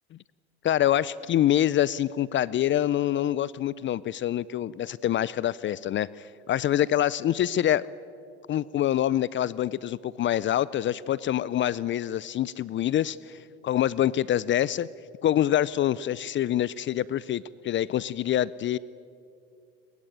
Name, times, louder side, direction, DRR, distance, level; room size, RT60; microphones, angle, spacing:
voice 1, 0.6-7.9 8.5-14.9 15.2-18.8, left 12 dB, 40° left, 21 dB, 0.5 m, -26 dB
22.0 x 21.5 x 9.0 m, 2.4 s
hypercardioid pair, 80°, 31 cm